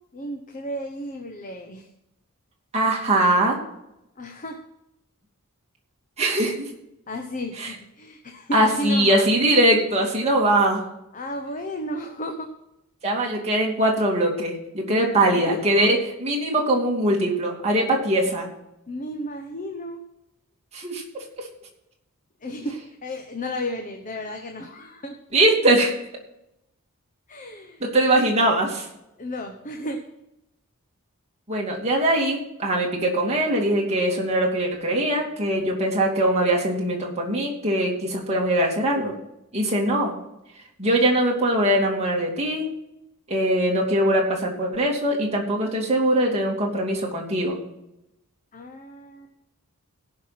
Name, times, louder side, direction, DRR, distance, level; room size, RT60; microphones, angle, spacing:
voice 1, 0.1-1.8 4.2-4.6 7.1-9.3 11.1-12.5 14.8-15.9 18.9-20.0 22.4-22.8 23.0-25.1 27.3-27.8 29.2-30.0 48.5-49.3, equal, 35° left, 4 dB, 1.0 m, -33 dB
voice 2, 2.7-3.6 6.2-6.7 7.6-7.7 8.5-10.8 13.0-18.5 20.7-21.0 21.4-21.5 25.3-25.9 27.8-28.9 31.5-39.1 39.5-40.1 40.8-42.7 43.3-47.6, right 1 dB, 30° right, -1 dB, 2.6 m, -21 dB
17.5 x 5.9 x 5.9 m, 0.87 s
head